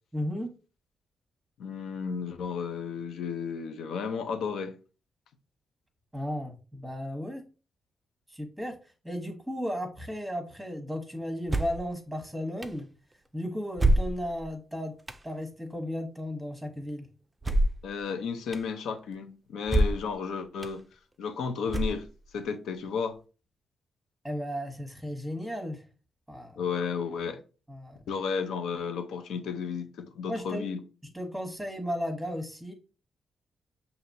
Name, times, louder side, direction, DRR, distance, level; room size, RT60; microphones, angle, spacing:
voice 1, 0.1-0.5 6.1-7.4 8.3-8.7 9.0-12.9 13.3-14.9 15.2-17.1 24.2-25.8 26.3-26.6 27.7-28.0 30.3-30.7 31.1-32.7, equal, ahead, 1.0 m, -34 dB
voice 2, 1.6-4.8 17.8-20.8 21.2-22.1 22.3-23.2 26.6-27.4 28.1-30.8, left 6 dB, 85° left, 0.7 m, -33 dB
sound 1, 11.5-11.9 12.6-12.7 13.8-14.5 15.1-15.2 17.4-17.9 18.5-18.6 19.7-20.1 20.6-20.7 21.7-22.3, right 1 dB, 20° right, 0.4 m, -25 dB
5.8 x 2.8 x 2.7 m
cardioid pair, 100°, 0 cm